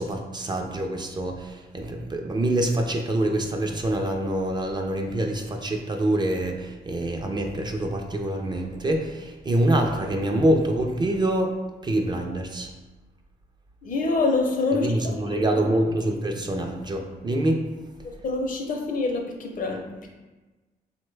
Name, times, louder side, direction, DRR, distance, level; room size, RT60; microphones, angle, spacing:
voice 1, 0.0-11.6 11.8-12.7 14.7-17.6, right 1 dB, 25° right, 2 dB, 0.3 m, -25 dB
voice 2, 13.8-15.4 18.0-20.1, left 3 dB, 55° left, 2 dB, 0.5 m, -26 dB
3.0 x 2.1 x 3.2 m, 1.2 s
cardioid pair, 85°, 17 cm